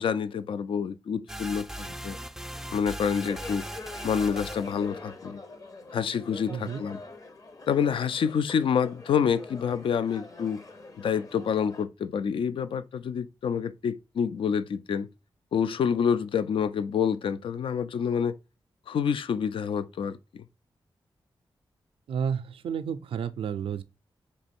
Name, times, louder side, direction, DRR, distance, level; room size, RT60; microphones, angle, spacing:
voice 1, 0.0-2.2 2.7-3.7 4.0-5.4 5.9-7.0 7.7-10.6 11.0-15.1 15.5-18.4 18.9-20.2, left 7 dB, 70° left, 0.4 m, -27 dB
sound 1, 1.3-4.8, right 1 dB, 5° right, 0.3 m, -39 dB
sound 2, 3.3-11.9, left 3 dB, 40° left, 0.7 m, -44 dB
voice 2, 6.5-6.8 22.1-23.8, right 7 dB, 80° right, 0.4 m, -31 dB
3.3 x 3.0 x 4.2 m
cardioid pair, 70°, 9 cm